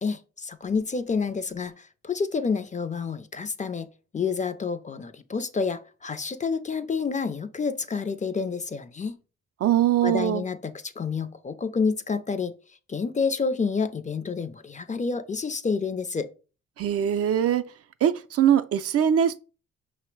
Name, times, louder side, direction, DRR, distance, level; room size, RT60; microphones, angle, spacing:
voice 1, 0.0-3.9 4.1-9.1 10.0-12.5 12.9-16.3, left 5 dB, 25° left, 0.4 m, -29 dB
voice 2, 9.6-10.4 16.8-17.6 18.0-19.4, right 10 dB, 55° right, 0.4 m, -22 dB
5.4 x 2.0 x 4.5 m
cardioid pair, 75°, 29 cm